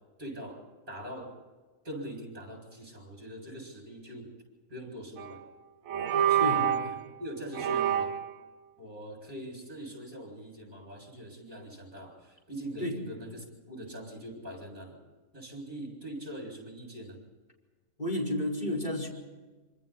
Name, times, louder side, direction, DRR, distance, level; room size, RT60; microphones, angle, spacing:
voice 1, 0.2-1.4 1.8-4.3 4.7-5.4 6.2-8.1 8.8-15.0 15.3-17.2, right 1 dB, 35° right, 2 dB, 7.6 m, -42 dB
sound 1, 5.2-5.5 5.9-7.0 7.5-8.3, right 10 dB, 70° right, 1.2 m, -27 dB
voice 2, 18.0-19.1, left 1 dB, 30° left, -1 dB, 5.5 m, -31 dB
26.5 x 26.0 x 4.3 m, 1.3 s
omnidirectional pair, 1.5 m